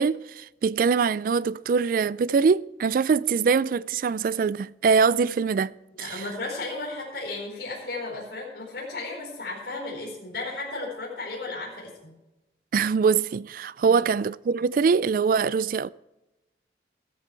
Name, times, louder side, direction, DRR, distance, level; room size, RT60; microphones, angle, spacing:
voice 1, 0.0-5.7 6.0-6.2 12.7-15.9, right 5 dB, 50° right, 0.3 m, -23 dB
voice 2, 6.0-12.1 13.8-14.1, left 3 dB, 65° left, 4.7 m, -34 dB
14.5 x 13.5 x 3.3 m
head